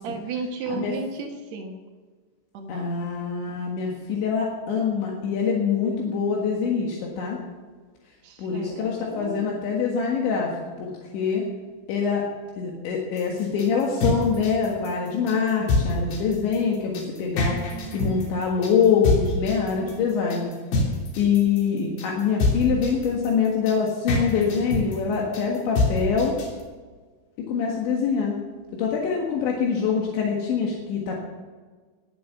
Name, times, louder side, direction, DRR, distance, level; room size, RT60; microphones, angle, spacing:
voice 1, 0.0-1.8 2.5-3.0 8.2-9.5 17.5-18.2 19.8-20.5, right 4 dB, 85° right, 3 dB, 1.5 m, -35 dB
voice 2, 2.7-7.4 8.4-10.5 10.8-11.5 11.9-12.2 12.6-17.6 17.9-20.5 21.2-26.4 27.5-28.4 28.8-31.2, left 6 dB, 75° left, -1 dB, 3.9 m, -24 dB
sound 1, 13.2-26.6, left 2 dB, 60° left, 5.0 m, -26 dB
21.0 x 8.4 x 7.0 m, 1.4 s
omnidirectional pair, 5.3 m